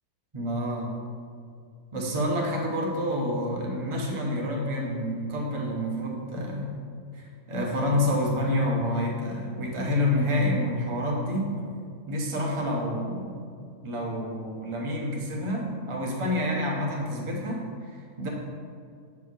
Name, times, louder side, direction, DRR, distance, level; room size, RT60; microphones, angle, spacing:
voice 1, 0.3-1.0 1.9-6.7 7.1-11.7 12.1-13.5 13.8-17.6 17.9-18.3, left 1 dB, 20° right, -2 dB, 1.2 m, -28 dB
7.8 x 5.4 x 6.3 m, 2.3 s
omnidirectional pair, 1.7 m